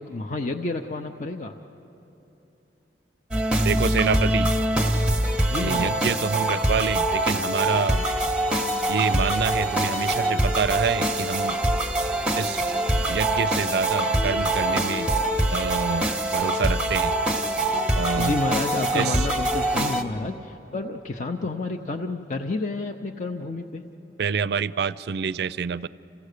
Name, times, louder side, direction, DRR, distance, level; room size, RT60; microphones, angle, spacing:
voice 1, 0.0-1.6 5.5-5.9 18.2-23.8, left 3 dB, 45° left, 4 dB, 0.6 m, -30 dB
sound 1, 3.3-20.0, right 1 dB, 5° right, 0.8 m, -24 dB
voice 2, 3.6-4.5 5.6-8.1 8.9-11.6 12.4-12.7 13.1-15.1 15.5-17.2 18.0-18.4 18.9-19.3 24.2-25.9, right 6 dB, 65° right, 18 dB, 0.4 m, -27 dB
28.0 x 16.0 x 6.6 m, 3.0 s
head